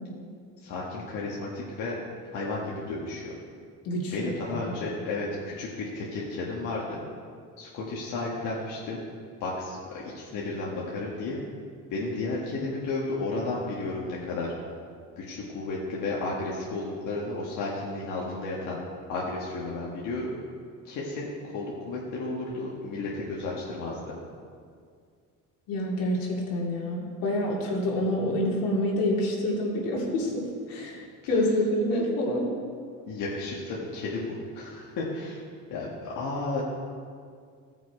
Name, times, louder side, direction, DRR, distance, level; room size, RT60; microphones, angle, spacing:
voice 1, 0.6-1.9 2.3-3.3 4.1-7.0 7.6-9.0 9.4-11.4 11.9-14.5 15.2-18.8 19.1-20.3 20.8-21.3 21.5-24.0 31.3-31.4 33.1-35.4 35.7-36.6, left 3 dB, 60° left, -5 dB, 1.6 m, -33 dB
voice 2, 3.8-4.7 25.7-32.5, left 1 dB, 80° left, -2 dB, 2.5 m, -27 dB
15.5 x 6.1 x 4.7 m, 2.1 s
cardioid pair, 165°, 34 cm